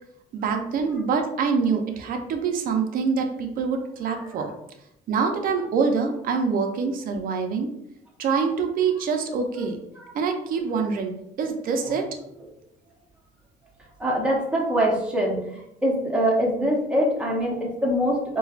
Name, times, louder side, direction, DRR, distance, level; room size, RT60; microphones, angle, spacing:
voice 1, 0.3-4.5 5.1-7.7 8.2-9.8 10.1-11.1 11.4-12.0, right 5 dB, 55° right, 4 dB, 0.5 m, -25 dB
voice 2, 14.0-18.4, equal, 5° right, -3 dB, 0.9 m, -24 dB
4.3 x 2.2 x 2.4 m, 0.80 s
cardioid pair, 110°, 17 cm